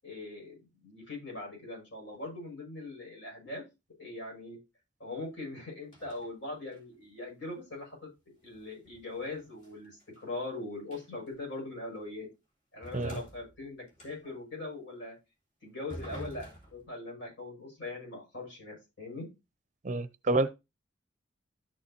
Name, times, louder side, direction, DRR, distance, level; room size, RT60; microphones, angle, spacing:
voice 1, 0.0-3.6 4.0-4.6 5.0-12.3 12.7-15.2 15.6-19.3, left 2 dB, 75° left, 6.5 m, -41 dB
sound 1, 5.9-6.3 6.7-7.0 8.5-10.5 10.9-11.3 12.0-12.1 12.8-14.4 15.9-16.9, right 1 dB, 40° left, 3.4 m, -47 dB
voice 2, 19.8-20.5, right 2 dB, 40° right, 0.5 m, -28 dB
13.0 x 6.7 x 2.8 m
head